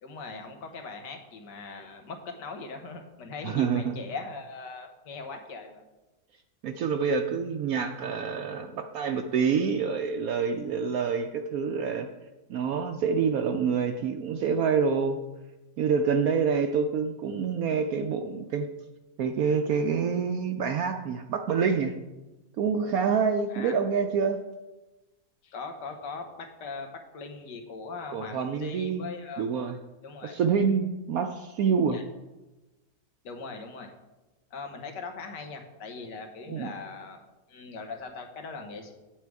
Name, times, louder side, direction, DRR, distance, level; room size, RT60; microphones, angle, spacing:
voice 1, 0.0-5.8 23.5-23.8 25.4-29.4 30.0-30.4 31.9-32.0 33.2-33.9 34.5-37.2 37.5-38.9, left 4 dB, 80° left, 5 dB, 1.8 m, -40 dB
voice 2, 3.4-3.9 6.6-12.1 12.5-15.2 15.8-18.7 19.2-22.0 22.6-24.4 28.1-29.0 29.4-29.8 30.2-32.0 36.5-36.7, right 6 dB, 70° right, 5 dB, 0.9 m, -27 dB
8.6 x 7.5 x 4.7 m, 1.1 s
omnidirectional pair, 1.8 m